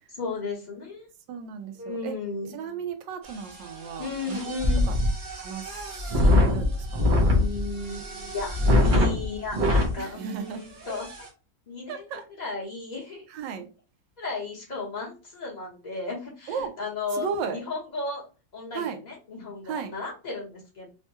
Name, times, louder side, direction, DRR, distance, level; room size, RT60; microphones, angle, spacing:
voice 1, 0.2-1.1 1.8-2.6 4.0-4.9 7.3-11.1 11.7-13.2 14.2-18.3 18.5-20.9, left 3 dB, 30° left, 0.8 m, -35 dB
voice 2, 1.3-2.1 2.5-4.6 4.9-5.0 5.3-7.1 10.0-10.6 10.9-11.0 11.9-12.2 13.3-13.7 16.5-16.7 17.1-17.6 18.7-19.0 19.7-19.9, right 6 dB, 80° right, 1.2 m, -35 dB
sound 1, 3.2-9.9 10.5-10.6 10.8-11.3, left 2 dB, 60° right, 0.5 m, -24 dB
3.5 x 2.1 x 2.8 m
omnidirectional pair, 2.0 m